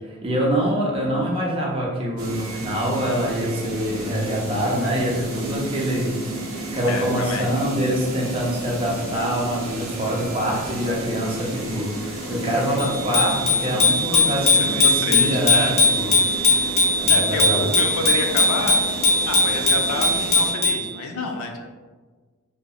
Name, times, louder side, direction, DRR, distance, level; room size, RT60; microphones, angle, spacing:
voice 1, 0.2-6.1 6.7-15.7 16.0-16.1 17.0-17.7, equal, 25° right, -3 dB, 0.4 m, -25 dB
sound 1, 2.2-20.5, right 1 dB, 75° right, 0.5 m, -32 dB
voice 2, 6.9-7.5 14.1-14.2 14.5-14.8 15.0-15.8 17.1-21.7, left 3 dB, 90° left, 3 dB, 0.4 m, -29 dB
Bicycle bell, 12.8-20.9, left 2 dB, 30° left, 0.5 m, -19 dB
2.7 x 2.0 x 2.2 m, 1.4 s
head